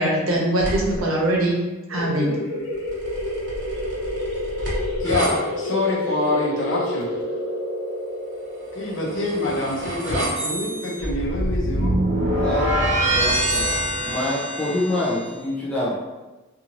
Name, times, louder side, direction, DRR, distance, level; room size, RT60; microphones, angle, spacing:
voice 1, 0.0-1.6 1.9-2.4, right 1 dB, 85° right, -2 dB, 0.8 m, -22 dB
sound 1, 0.6-1.0 2.9-5.3 8.8-15.2, right 1 dB, 60° right, 0.9 m, -25 dB
sound 2, 1.9-11.2, left 1 dB, 90° left, 1.0 m, -30 dB
voice 2, 5.0-7.1 8.7-12.0, left 2 dB, 60° left, -3 dB, 0.7 m, -26 dB
voice 3, 12.4-13.7 14.0-16.0, left 1 dB, 5° left, -8 dB, 0.4 m, -26 dB
2.6 x 2.5 x 2.9 m, 1.1 s
head